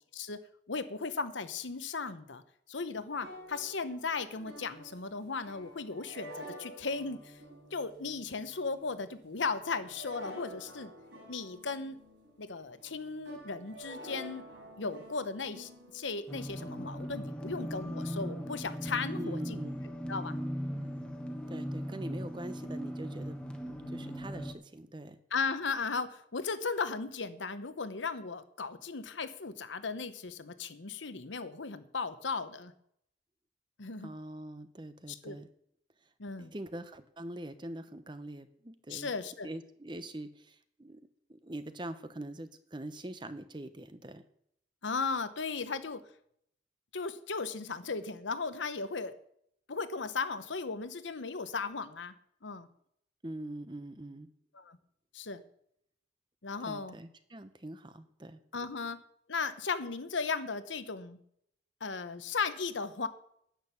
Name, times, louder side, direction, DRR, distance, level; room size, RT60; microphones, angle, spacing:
voice 1, 0.7-2.4 2.7-7.3 7.7-10.9 11.3-12.0 12.4-14.4 14.8-19.6 20.1-20.4 25.3-32.7 33.8-34.1 35.1-35.4 36.2-36.5 38.9-39.5 44.8-46.0 46.9-49.1 49.7-52.1 52.4-52.7 54.5-54.8 55.1-55.4 56.4-56.9 58.5-59.0 59.3-61.2 61.8-63.1, left 4 dB, 90° left, 11 dB, 1.0 m, -36 dB
sound 1, 3.1-16.8, equal, 85° right, 4.4 m, -50 dB
sound 2, 16.3-24.5, equal, 5° left, 1.2 m, -38 dB
voice 2, 19.2-19.8 21.5-25.2 34.0-35.5 36.0-36.1 36.4-39.1 39.4-41.0 41.3-44.2 53.2-54.3 56.6-58.4, right 1 dB, 25° right, 11 dB, 0.8 m, -43 dB
10.5 x 8.7 x 7.0 m, 0.69 s
head